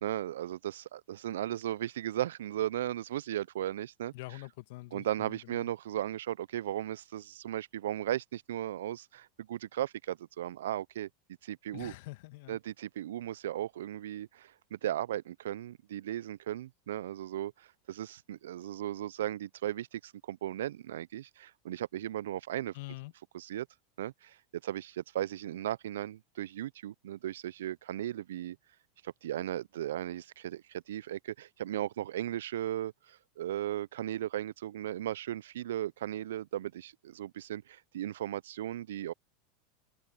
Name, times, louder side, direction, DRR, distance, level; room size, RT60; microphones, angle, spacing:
voice 1, 0.0-4.1 4.9-11.1 11.4-11.9 12.5-22.7 23.3-23.7 24.0-24.4 24.6-28.6 29.0-39.1, right 12 dB, 70° right, 0.8 m, -36 dB
voice 2, 4.1-5.7 11.7-12.6 22.7-23.1, left 21 dB, 60° left, 2.5 m, -45 dB
open air
hypercardioid pair, 85°, 0 cm